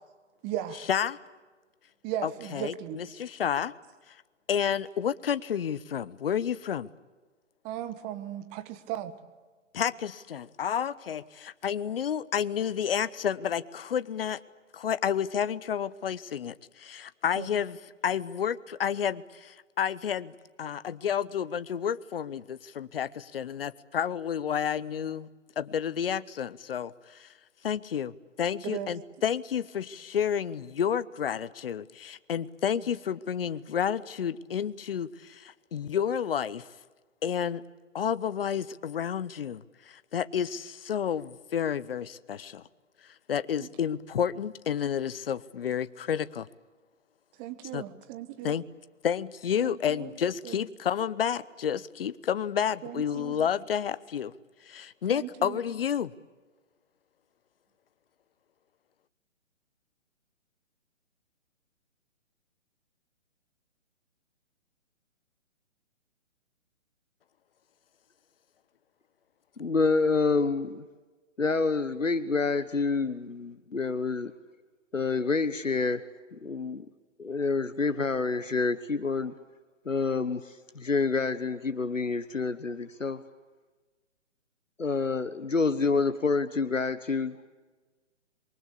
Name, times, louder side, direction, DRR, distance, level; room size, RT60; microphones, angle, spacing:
voice 1, 0.4-0.9 2.0-3.0 7.6-9.1 17.3-17.5 28.6-28.9 43.6-43.7 47.4-48.6 49.6-50.1 50.4-50.6 52.8-53.5 55.1-55.6, right 12 dB, 20° right, 11 dB, 1.3 m, -37 dB
voice 2, 2.2-3.7 4.5-6.9 9.7-14.4 14.7-17.8 18.0-25.3 25.6-27.3 27.6-36.7 37.2-37.6 37.9-42.6 43.3-46.5 47.7-47.8 48.4-48.6 49.0-54.3 54.7-56.1, left 8 dB, 50° left, 17 dB, 1.1 m, -30 dB
voice 3, 69.6-70.8 71.4-74.3 74.9-76.0 76.4-76.8 77.2-79.3 79.8-83.2 84.8-87.3, left 4 dB, 85° left, 12 dB, 1.3 m, -28 dB
27.5 x 23.5 x 8.4 m, 1.3 s
figure-of-eight pair, 135°, 38 cm